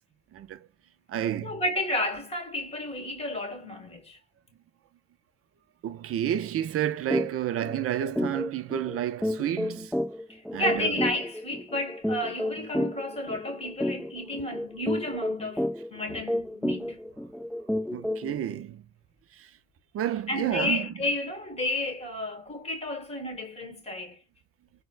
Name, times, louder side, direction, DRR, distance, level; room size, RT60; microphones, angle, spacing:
voice 1, 0.3-0.7 1.1-1.6 5.8-10.0 10.5-11.1 16.1-16.2 17.9-18.9 19.3-19.6 19.9-20.9, right 10 dB, 50° right, 0.5 m, -30 dB
voice 2, 1.4-4.2 10.3-17.0 20.3-24.2, left 1 dB, 20° left, 1.4 m, -32 dB
sound 1, 7.1-7.3 7.6-7.8 8.2-18.4, left 1 dB, ahead, 0.3 m, -31 dB
4.0 x 2.1 x 2.4 m
cardioid pair, 90°, 30 cm